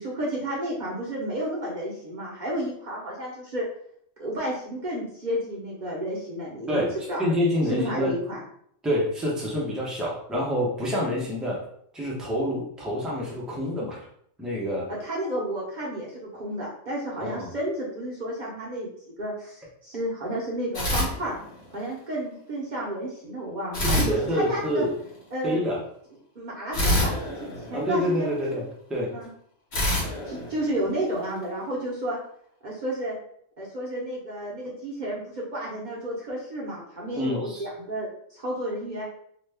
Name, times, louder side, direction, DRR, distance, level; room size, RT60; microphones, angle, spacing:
voice 1, 0.0-3.6 4.2-6.8 7.1-7.2 7.7-8.4 14.9-18.9 19.2-21.3 21.7-24.8 25.3-25.6 26.3-28.6 29.1-29.3 30.2-32.2 32.6-33.2 33.6-39.0, right 1 dB, 45° right, -4 dB, 0.7 m, -31 dB
voice 2, 6.7-8.2 8.8-11.6 11.9-14.1 14.4-14.9 17.2-17.5 23.8-24.9 25.4-25.8 27.7-28.6 28.9-29.1 37.1-37.6, left 1 dB, ahead, -4 dB, 0.3 m, -27 dB
sound 1, 20.7-21.9 23.7-25.1 26.7-28.4 29.7-31.3, left 1 dB, 55° left, 1.3 m, -28 dB
2.8 x 2.2 x 3.3 m, 0.67 s
omnidirectional pair, 1.4 m